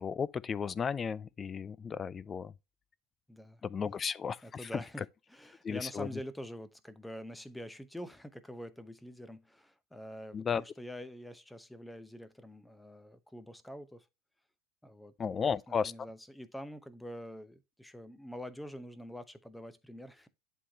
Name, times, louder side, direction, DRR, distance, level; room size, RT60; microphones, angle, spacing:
voice 1, 0.0-2.5 3.6-4.7 5.6-6.1 10.3-10.6 15.2-15.9, left 6 dB, 25° left, 0.3 m, -34 dB
voice 2, 3.3-4.0 4.4-14.1 14.8-20.3, equal, 5° left, 0.8 m, -46 dB
11.0 x 3.7 x 2.8 m
figure-of-eight pair, 80°, 0 cm